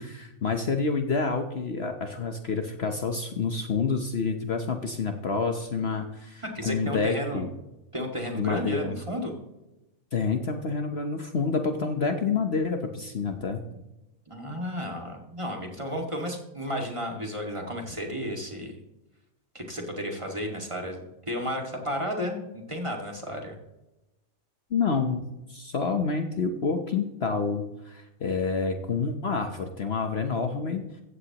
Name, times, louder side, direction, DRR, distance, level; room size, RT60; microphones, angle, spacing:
voice 1, 0.0-7.5 8.3-9.0 10.1-13.6 24.7-30.8, left 4 dB, 50° left, 5 dB, 1.1 m, -28 dB
voice 2, 6.4-7.4 7.9-9.3 14.3-18.8 19.5-23.5, equal, 20° right, 1 dB, 2.1 m, -33 dB
15.5 x 14.5 x 3.0 m, 0.96 s
omnidirectional pair, 1.5 m